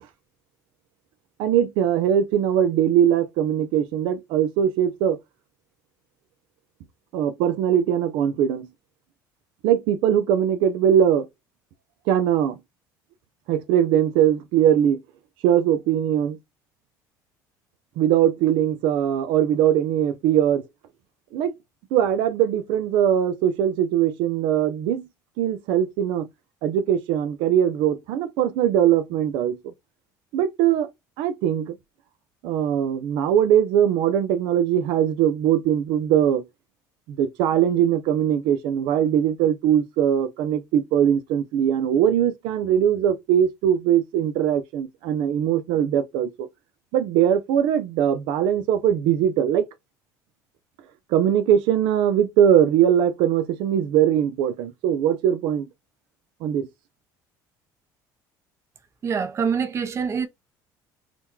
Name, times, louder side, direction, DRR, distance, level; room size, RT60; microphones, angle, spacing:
voice 1, 1.4-5.2 7.1-8.7 9.6-11.3 12.1-12.6 13.5-15.0 15.4-16.4 18.0-20.6 21.3-21.5 21.9-25.1 25.4-26.3 26.6-29.7 30.3-30.9 31.2-31.7 32.4-36.4 37.1-46.5 46.9-49.7 51.1-55.7 56.4-56.7, right 10 dB, 80° right, 0.5 m, -21 dB
voice 2, 59.0-60.3, right 6 dB, 35° right, 0.6 m, -25 dB
3.0 x 2.2 x 3.5 m
cardioid pair, 110°, 8 cm